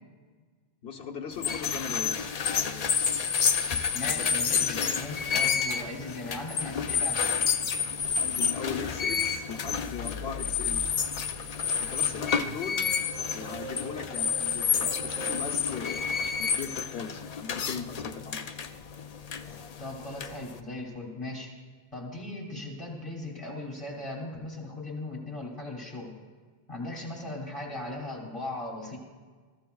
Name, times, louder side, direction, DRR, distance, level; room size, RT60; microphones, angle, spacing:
voice 1, 0.8-2.2 2.5-3.0 4.1-4.3 4.5-4.8 8.2-10.9 11.8-12.9 13.3-18.4, left 6 dB, 80° left, 1 dB, 1.3 m, -39 dB
sound 1, 1.3-20.6, left 6 dB, 50° left, 0.6 m, -29 dB
voice 2, 3.9-7.2 19.8-21.5 21.9-26.1 26.7-29.0, left 2 dB, 30° left, -1 dB, 3.1 m, -38 dB
sound 2, 9.6-15.4, equal, 55° right, 1.8 m, -44 dB
22.5 x 14.0 x 2.3 m, 1.5 s
omnidirectional pair, 1.0 m